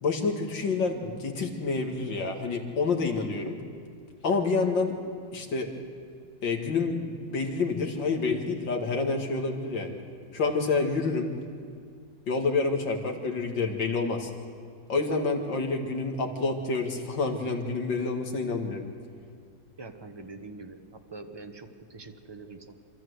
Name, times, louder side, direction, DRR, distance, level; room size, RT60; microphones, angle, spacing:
voice 1, 0.0-3.6 4.2-4.9 5.3-5.7 6.4-10.0 10.3-11.3 12.3-14.3 14.9-18.8, left 4 dB, 70° left, 2 dB, 2.6 m, -28 dB
voice 2, 19.8-22.7, right 3 dB, 20° right, 5 dB, 0.8 m, -44 dB
27.0 x 13.5 x 8.0 m, 2.2 s
omnidirectional pair, 2.1 m